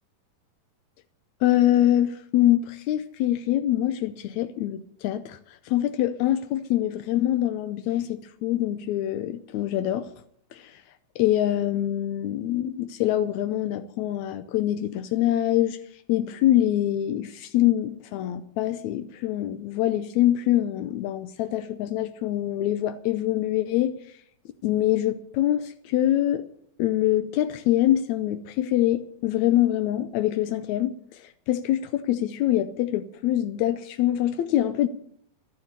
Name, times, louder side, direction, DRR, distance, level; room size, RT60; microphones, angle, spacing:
voice 1, 1.4-5.4 5.6-10.1 10.5-10.8 11.1-15.8 16.1-24.0 24.6-26.4 26.8-34.9, left 13 dB, 85° left, 1.6 m, -24 dB
12.0 x 11.5 x 6.7 m
omnidirectional pair, 4.1 m